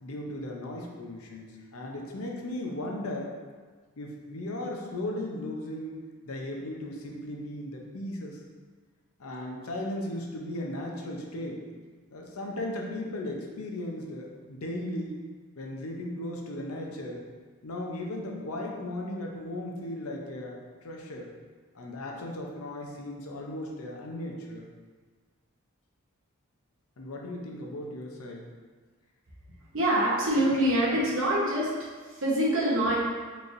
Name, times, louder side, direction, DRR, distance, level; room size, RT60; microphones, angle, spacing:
voice 1, 0.0-3.3 4.0-6.0 6.2-8.4 9.2-11.6 12.1-15.2 15.6-17.2 17.6-21.3 21.7-24.7 27.0-28.4, left 1 dB, 80° left, 0 dB, 0.6 m, -36 dB
voice 2, 29.7-31.7 32.0-33.0, right 1 dB, 65° right, -6 dB, 1.1 m, -25 dB
4.4 x 3.1 x 2.6 m, 1.5 s
head